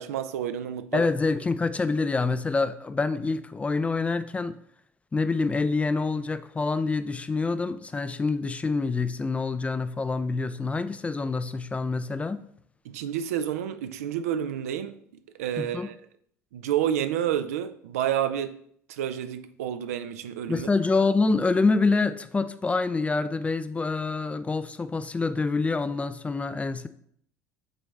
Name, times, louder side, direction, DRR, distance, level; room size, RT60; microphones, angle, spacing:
voice 1, 0.0-1.1 12.8-15.0 15.4-16.0 16.5-18.6 18.9-20.7, right 10 dB, 65° right, 0.4 m, -29 dB
voice 2, 0.9-4.6 5.1-12.4 15.6-15.9 20.5-26.9, left 3 dB, 15° left, 0.3 m, -26 dB
7.8 x 4.0 x 3.3 m
figure-of-eight pair, 65°, 9 cm